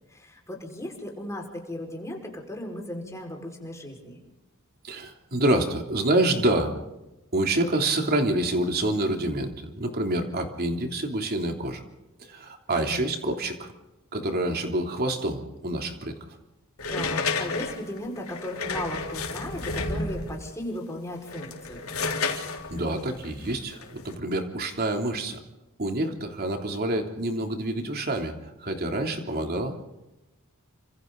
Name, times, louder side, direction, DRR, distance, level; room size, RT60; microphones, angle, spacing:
voice 1, 0.1-4.2 12.7-13.1 16.9-21.8, left 1 dB, 15° left, 1 dB, 5.3 m, -36 dB
voice 2, 4.8-6.7 7.3-11.8 12.2-13.7 14.1-16.2 22.4-25.4 25.8-29.7, right 1 dB, 45° right, 3 dB, 3.3 m, -27 dB
sound 1, 16.8-20.5 21.2-24.1, left 3 dB, 85° left, 3.5 m, -31 dB
29.5 x 26.5 x 4.0 m, 0.98 s
head